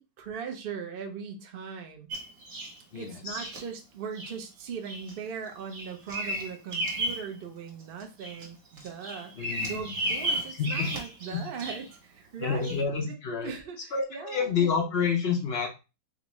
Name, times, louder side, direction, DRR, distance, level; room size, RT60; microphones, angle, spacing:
voice 1, 0.0-2.1 2.9-13.2 13.4-14.5, right 6 dB, 65° right, 4 dB, 0.5 m, -39 dB
Bird vocalization bird call bird song, 2.1-2.8 3.4-3.6 4.2-4.4 4.9-5.1 5.5-7.3 7.7-8.5 8.8-11.9 12.6-12.8, right 1 dB, 45° right, 1.1 m, -34 dB
voice 2, 2.9-3.5 9.4-10.0 10.5-10.9 11.3-11.4 12.4-13.5 13.9-15.7, left 6 dB, 80° left, 2 dB, 0.5 m, -29 dB
4.0 x 3.4 x 3.0 m, 0.29 s
omnidirectional pair, 2.0 m